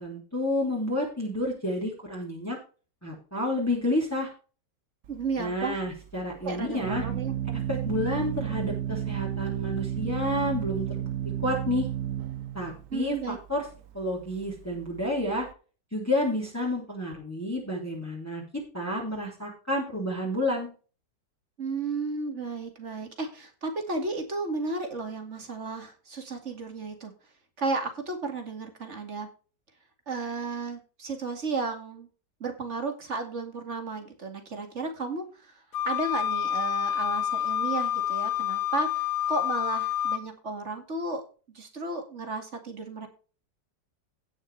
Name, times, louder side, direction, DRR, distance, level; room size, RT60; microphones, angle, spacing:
voice 1, 0.0-2.6 3.0-4.3 5.4-7.0 7.7-11.1 11.4-11.9 12.5-13.6 13.9-15.5 15.9-20.7, left 1 dB, 10° left, -3 dB, 3.1 m, -30 dB
Organ, 5.0-15.5, right 10 dB, 60° right, 1.0 m, -33 dB
voice 2, 5.1-5.8 6.4-7.3 12.9-13.4 21.6-27.1 27.6-29.3 30.1-32.1 32.4-41.2 41.5-43.1, right 3 dB, 40° right, 5 dB, 2.5 m, -33 dB
Wind instrument woodwind instrument, 35.7-40.2, left 10 dB, 60° left, 1.2 m, -28 dB
17.0 x 6.5 x 3.3 m, 0.36 s
omnidirectional pair, 1.9 m